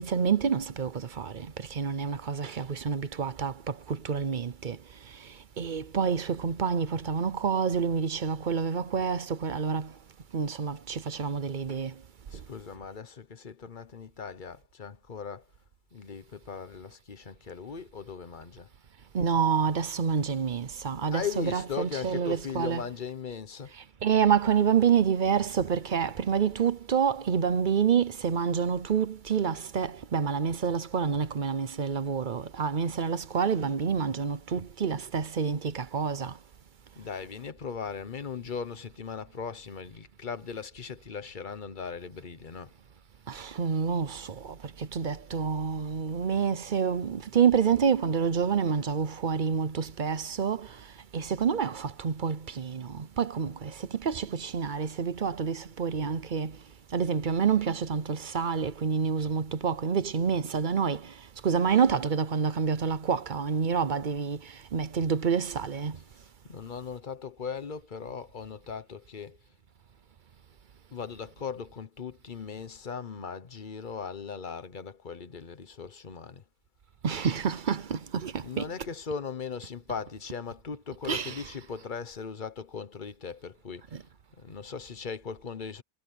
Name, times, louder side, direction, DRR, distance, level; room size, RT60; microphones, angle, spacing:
voice 1, 0.0-10.0 10.3-12.0 12.3-12.4 19.1-22.9 24.0-36.4 43.3-56.6 56.9-66.0 77.0-78.9 81.0-81.5 83.9-84.0, right 6 dB, 50° right, 0.9 m, -28 dB
voice 2, 12.3-15.5 15.9-18.7 21.1-23.7 37.0-42.7 65.9-66.0 66.5-69.4 70.9-76.4 78.4-84.0 84.4-85.8, left 6 dB, 50° left, 1.3 m, -38 dB
omnidirectional pair, 1.1 m